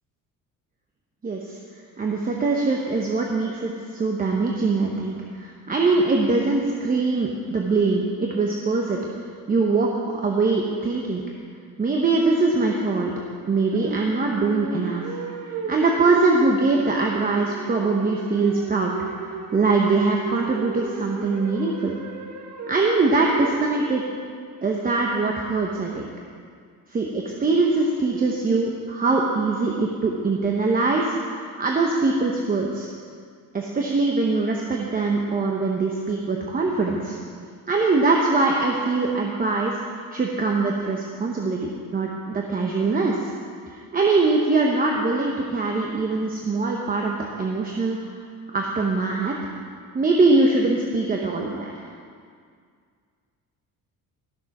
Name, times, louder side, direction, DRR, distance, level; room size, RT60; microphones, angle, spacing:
voice 1, 1.2-1.6 2.0-9.1 9.5-11.2 11.8-13.1 13.5-15.1 15.7-18.9 19.2-22.0 22.7-24.0 24.6-26.1 26.9-31.2 31.6-32.9 33.5-37.2 37.7-39.8 40.1-43.3 43.7-48.0 48.5-49.4 49.9-51.7, right 3 dB, 25° right, -1 dB, 0.9 m, -22 dB
sound 1, 13.7-24.2, right 5 dB, 50° right, 1.4 m, -34 dB
13.5 x 7.0 x 5.9 m, 2.1 s
cardioid pair, 145°, 35 cm